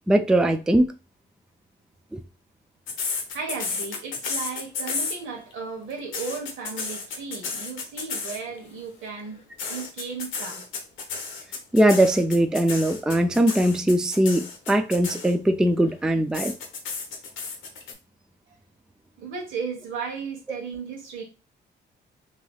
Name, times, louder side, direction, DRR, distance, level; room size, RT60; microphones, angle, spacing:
voice 1, 0.1-0.9 2.1-2.2 11.7-16.5, right 1 dB, 5° right, 0.3 m, -20 dB
sound 1, 2.9-5.5 5.9-8.6 9.6-15.6 16.3-17.9, left 4 dB, 90° left, 0.9 m, -32 dB
voice 2, 3.3-9.4 9.7-10.6 19.2-21.2, right 5 dB, 85° right, 1.2 m, -35 dB
3.2 x 2.8 x 2.3 m
cardioid pair, 90°, 20 cm